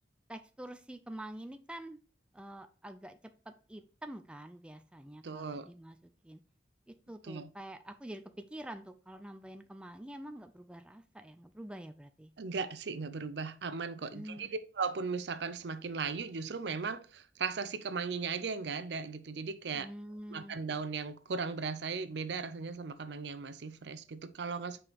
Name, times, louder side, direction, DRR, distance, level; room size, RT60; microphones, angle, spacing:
voice 1, 0.3-2.0 2.3-3.2 3.5-6.4 7.1-12.3 14.1-14.5 19.7-20.6, right 1 dB, 5° right, 0.3 m, -47 dB
voice 2, 5.2-5.7 7.2-7.5 12.4-19.9 20.3-24.8, right 5 dB, 70° right, 0.6 m, -37 dB
6.1 x 4.7 x 3.4 m
head